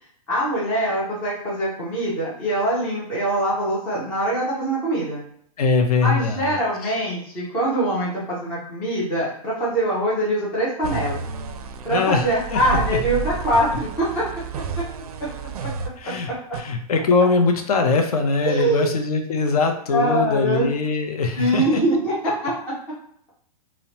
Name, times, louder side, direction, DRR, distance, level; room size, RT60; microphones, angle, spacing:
voice 1, 0.3-5.2 6.0-11.2 11.8-14.3 15.2-15.3 15.6-15.7 16.0-16.3 18.4-18.9 19.9-20.7 21.4-22.5, right 1 dB, 5° left, -7 dB, 0.3 m, -23 dB
voice 2, 5.6-6.6 6.8-6.9 11.9-12.6 12.9-13.0 16.0-21.8, left 4 dB, 70° left, 4 dB, 0.5 m, -22 dB
sound 1, 10.8-16.6 17.0-17.1 17.6-17.7, right 5 dB, 75° right, 0.4 m, -31 dB
2.9 x 2.1 x 2.8 m, 0.65 s
hypercardioid pair, 175°, 20 cm